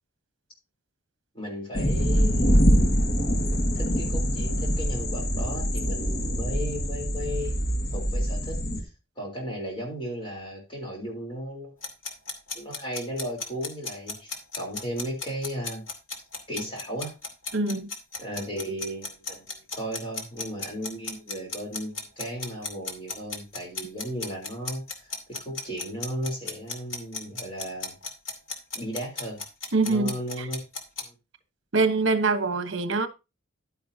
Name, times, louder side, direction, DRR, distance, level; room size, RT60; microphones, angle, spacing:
voice 1, 1.3-2.9 3.8-7.7 7.9-8.6 9.2-11.7 12.5-15.8 16.5-17.1 18.2-25.1 25.4-28.0 28.7-29.4 29.8-30.6 31.0-31.1, equal, 25° left, 3.7 m, -35 dB
sound 1, 1.7-8.8, equal, 50° left, 1.8 m, -24 dB
sound 2, 11.8-31.0, left 4 dB, 75° left, 2.4 m, -35 dB
voice 2, 17.5-17.9 29.7-30.5 31.7-33.1, right 3 dB, 65° right, 1.1 m, -24 dB
11.0 x 9.5 x 2.8 m
head